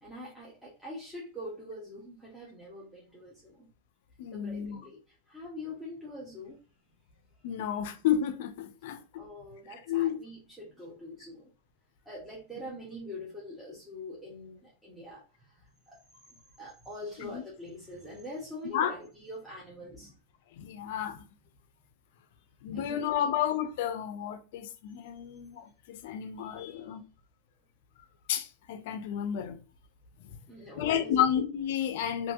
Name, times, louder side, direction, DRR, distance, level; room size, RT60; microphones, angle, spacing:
voice 1, 0.0-3.7 4.3-5.0 5.3-6.6 7.5-7.6 8.8-11.5 12.1-16.0 16.3-20.2 22.7-23.3 26.4-26.9 30.3-31.3, left 1 dB, 5° right, 0.6 m, -44 dB
voice 2, 4.2-4.8 7.4-9.2 9.9-10.2 17.2-17.4 18.7-18.9 20.5-21.3 22.6-27.0 28.3-29.6 30.8-32.3, left 9 dB, 60° left, 0.4 m, -31 dB
2.8 x 2.5 x 2.3 m
supercardioid pair, 155°, 0 cm